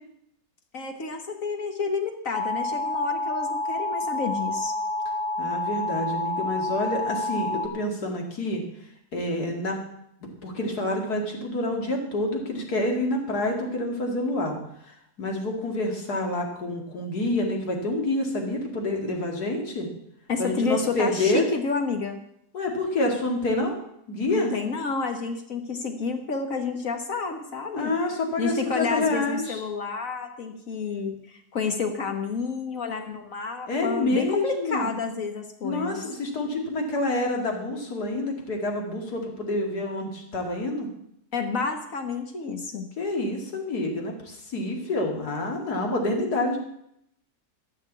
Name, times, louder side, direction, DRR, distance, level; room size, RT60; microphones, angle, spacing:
voice 1, 0.7-4.7 20.3-22.2 24.3-27.9 28.4-36.0 41.3-42.9, left 4 dB, 60° left, 5 dB, 1.6 m, -30 dB
sound 1, 2.3-7.7, left 2 dB, 40° left, 0.9 m, -29 dB
voice 2, 5.4-8.6 9.1-9.8 10.4-14.6 14.9-19.9 20.4-21.4 22.5-23.8 24.1-24.5 27.7-29.6 33.7-34.9 35.6-40.9 43.0-46.6, left 2 dB, 75° left, 2 dB, 2.8 m, -27 dB
13.5 x 6.2 x 8.4 m, 0.76 s
omnidirectional pair, 1.7 m